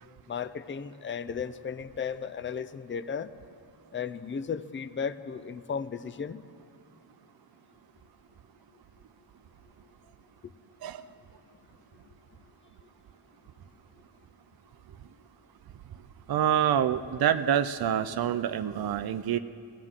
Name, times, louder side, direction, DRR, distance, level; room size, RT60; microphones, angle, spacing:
voice 1, 0.3-3.3 3.9-6.4, left 6 dB, 30° left, 13 dB, 0.4 m, -35 dB
voice 2, 16.3-19.4, right 9 dB, 55° right, 10 dB, 0.5 m, -26 dB
22.5 x 16.0 x 3.7 m, 2.3 s
wide cardioid pair, 100°, 45 cm